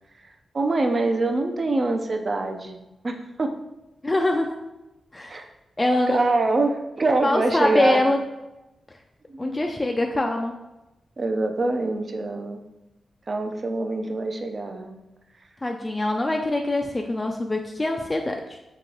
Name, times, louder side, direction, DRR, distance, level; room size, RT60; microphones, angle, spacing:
voice 1, 0.5-2.8 3.0-3.5 5.3-5.4 6.1-8.0 9.3-9.6 11.2-12.6 13.3-15.0, right 2 dB, 45° right, 5 dB, 0.4 m, -24 dB
voice 2, 4.0-4.6 5.1-5.4 5.8-6.2 7.2-8.2 9.4-10.6 15.6-18.6, left 2 dB, 25° left, 2 dB, 0.3 m, -24 dB
3.0 x 3.0 x 3.7 m, 0.97 s
cardioid pair, 70°, 0 cm